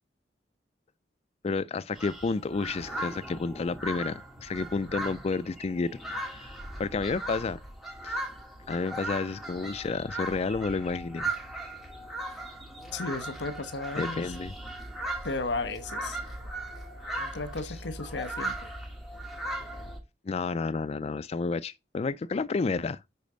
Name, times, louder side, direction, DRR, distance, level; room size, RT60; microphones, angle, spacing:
voice 1, 1.4-6.5 6.8-7.6 8.0-8.3 8.7-11.3 14.0-14.5 20.3-23.0, left 4 dB, 35° left, 0.4 m, -31 dB
sound 1, 1.9-20.0, right 1 dB, ahead, 2.3 m, -38 dB
voice 2, 12.9-14.3 15.2-16.2 17.2-18.7, left 3 dB, 85° left, 1.1 m, -34 dB
10.5 x 4.3 x 5.1 m
head